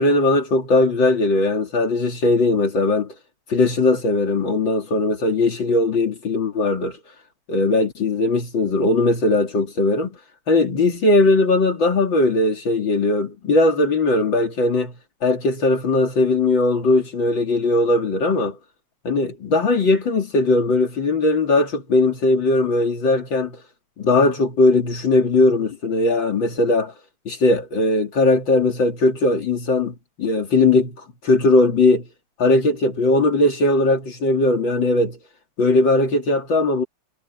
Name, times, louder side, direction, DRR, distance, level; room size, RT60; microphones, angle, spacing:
voice 1, 0.0-3.1 3.5-7.0 7.5-10.1 10.5-14.9 15.2-18.6 19.0-23.6 24.0-26.9 27.2-31.0 31.2-32.0 32.4-35.2 35.6-36.8, left 2 dB, 70° left, 3.4 m, -19 dB
omnidirectional pair, 2.2 m